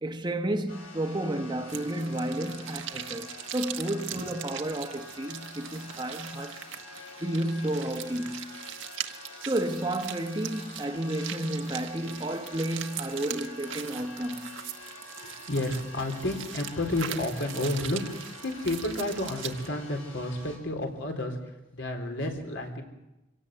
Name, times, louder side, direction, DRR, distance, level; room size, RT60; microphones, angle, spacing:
voice 1, 0.0-6.6 7.2-8.6 9.5-14.7, right 1 dB, 20° right, 1.1 m, -32 dB
sound 1, 0.7-20.6, left 2 dB, 90° left, 7.5 m, -47 dB
sound 2, 1.7-19.7, right 10 dB, 75° right, 1.3 m, -41 dB
voice 2, 15.2-22.8, left 1 dB, 70° left, 4.1 m, -31 dB
25.5 x 17.5 x 7.8 m
head